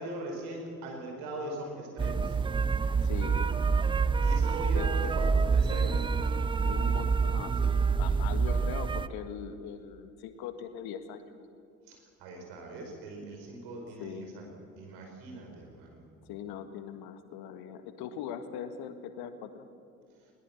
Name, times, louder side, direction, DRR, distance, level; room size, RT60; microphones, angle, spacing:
voice 1, 0.0-2.4 4.2-6.1 11.9-14.5 14.8-16.0, right 1 dB, 60° right, 2 dB, 5.2 m, -40 dB
sound 1, 2.0-9.1, right 5 dB, 10° right, 0.4 m, -27 dB
voice 2, 3.0-3.5 4.7-5.1 6.6-11.3 14.0-14.3 16.3-19.7, left 8 dB, 60° left, 9 dB, 1.7 m, -41 dB
21.0 x 18.5 x 7.2 m, 2.4 s
figure-of-eight pair, 55°, 43 cm